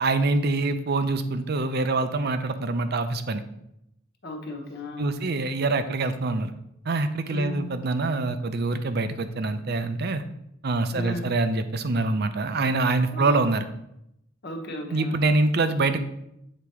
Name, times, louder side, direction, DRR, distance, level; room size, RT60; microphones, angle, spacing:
voice 1, 0.0-3.4 5.0-6.5 6.9-10.2 10.6-13.6 14.9-16.0, right 3 dB, 50° right, 10 dB, 0.5 m, -25 dB
voice 2, 4.2-5.2 7.3-7.7 10.9-11.3 13.1-13.3 14.4-15.2, left 1 dB, 55° left, 1 dB, 1.1 m, -35 dB
8.4 x 3.0 x 4.7 m, 0.80 s
head